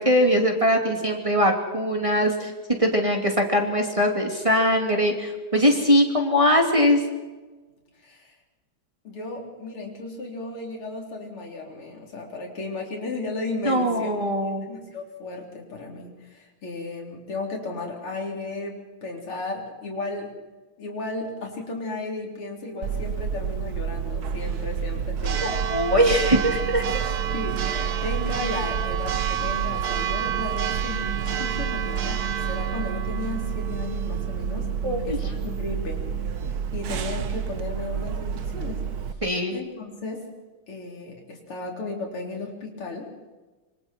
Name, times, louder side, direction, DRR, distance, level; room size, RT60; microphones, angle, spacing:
voice 1, 0.0-2.5 2.8-7.0 13.6-14.7 25.4-26.8 34.8-35.2 39.2-39.6, equal, 15° right, 1 dB, 2.7 m, -21 dB
voice 2, 8.0-8.3 9.0-14.1 14.4-20.3 20.8-25.6 27.3-36.0 36.7-38.8 39.5-40.3 40.7-43.1, left 3 dB, 85° left, 0 dB, 4.6 m, -35 dB
Church bell, 22.8-39.1, right 7 dB, 55° right, 1.3 m, -28 dB
26.5 x 25.0 x 4.5 m, 1.2 s
omnidirectional pair, 2.3 m